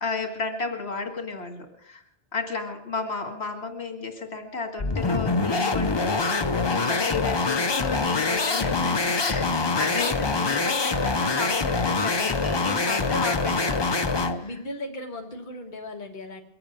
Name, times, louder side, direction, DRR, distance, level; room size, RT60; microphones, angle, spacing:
voice 1, 0.0-2.0 2.3-9.5 9.7-13.9 14.3-14.4, left 4 dB, 75° left, 4 dB, 2.4 m, -32 dB
sound 1, 4.8-14.4, left 3 dB, 30° left, 0.7 m, -25 dB
voice 2, 14.4-16.4, left 1 dB, 45° left, 1 dB, 1.6 m, -37 dB
22.5 x 8.8 x 6.5 m, 0.74 s
omnidirectional pair, 1.1 m